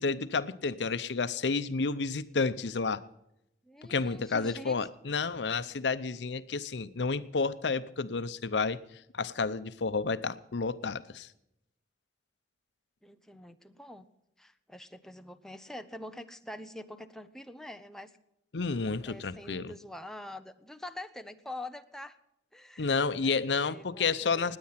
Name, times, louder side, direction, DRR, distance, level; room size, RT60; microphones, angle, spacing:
voice 1, 0.0-3.0 3.9-8.8 9.1-11.3 18.5-19.7 22.8-24.6, left 4 dB, 85° left, 15 dB, 0.7 m, -30 dB
voice 2, 3.6-4.8 13.0-14.1 14.4-18.1 19.1-22.2 22.5-22.9 23.2-24.5, left 1 dB, 5° left, 8 dB, 0.7 m, -45 dB
18.5 x 9.6 x 5.8 m, 0.83 s
head